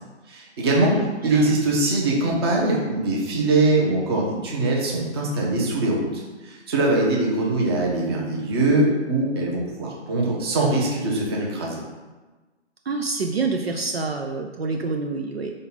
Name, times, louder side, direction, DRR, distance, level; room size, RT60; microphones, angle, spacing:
voice 1, 0.3-0.9 1.2-11.8, right 2 dB, 20° right, -3 dB, 1.0 m, -22 dB
voice 2, 12.9-15.5, right 4 dB, 60° right, 3 dB, 0.6 m, -27 dB
4.9 x 4.2 x 5.5 m, 1.2 s
figure-of-eight pair, 145°, 35 cm